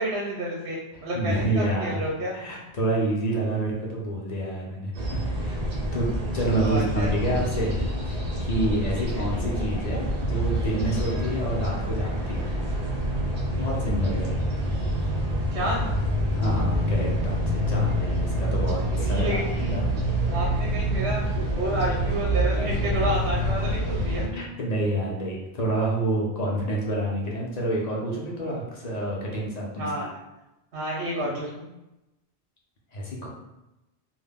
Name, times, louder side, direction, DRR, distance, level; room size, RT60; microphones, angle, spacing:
voice 1, 0.0-2.3 6.6-7.4 9.0-9.2 15.5-16.0 19.0-19.7 20.3-24.3 29.8-30.1 30.7-31.7, right 1 dB, 80° right, -4 dB, 0.8 m, -30 dB
voice 2, 1.1-2.0 2.3-5.7 5.9-7.8 8.0-12.5 13.6-14.4 16.3-19.8 24.3-29.9 32.9-33.3, right 1 dB, 50° left, -3 dB, 0.5 m, -28 dB
sound 1, 4.9-24.3, equal, 45° right, 0.6 m, -27 dB
2.2 x 2.1 x 3.3 m, 0.97 s
omnidirectional pair, 1.1 m